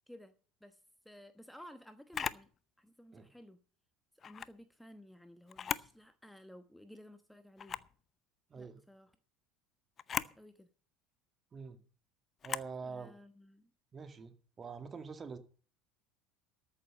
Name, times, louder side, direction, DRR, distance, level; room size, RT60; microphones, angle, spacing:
voice 1, 1.0-2.5 2.8-3.6 4.2-7.8 8.6-9.1 10.2-10.7 12.8-13.7, equal, 5° left, 1.1 m, -55 dB
Camera, 2.1-2.5 4.2-4.5 5.5-6.0 6.4-6.5 7.6-7.9 10.0-10.4 12.4-12.7, left 7 dB, 35° left, 0.7 m, -38 dB
voice 2, 8.5-8.8 11.5-11.8 12.4-13.2 13.9-15.4, right 5 dB, 30° right, 2.2 m, -45 dB
13.5 x 7.3 x 6.4 m
hypercardioid pair, 75°, 0 cm